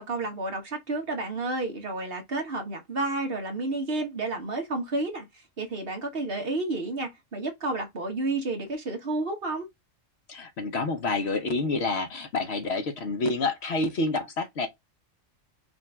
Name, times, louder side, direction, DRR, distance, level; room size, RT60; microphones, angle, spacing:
voice 1, 0.0-5.3 5.6-9.7, right 2 dB, 50° right, 1.4 m, -31 dB
voice 2, 10.3-14.7, left 3 dB, 60° left, 1.1 m, -28 dB
5.2 x 2.6 x 3.3 m
omnidirectional pair, 1.3 m